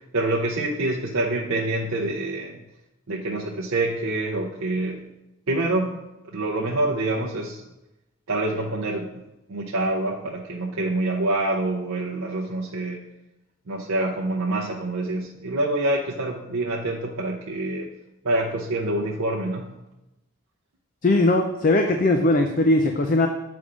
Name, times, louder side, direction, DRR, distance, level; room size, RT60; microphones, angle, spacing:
voice 1, 0.1-2.6 3.1-5.0 5.5-6.0 6.3-7.6 8.3-9.2 9.5-13.0 13.7-17.9 18.2-19.7, right 2 dB, 75° right, -2 dB, 0.6 m, -26 dB
voice 2, 21.0-23.3, left 2 dB, 40° left, 4 dB, 0.4 m, -19 dB
6.8 x 3.4 x 5.0 m, 0.94 s
head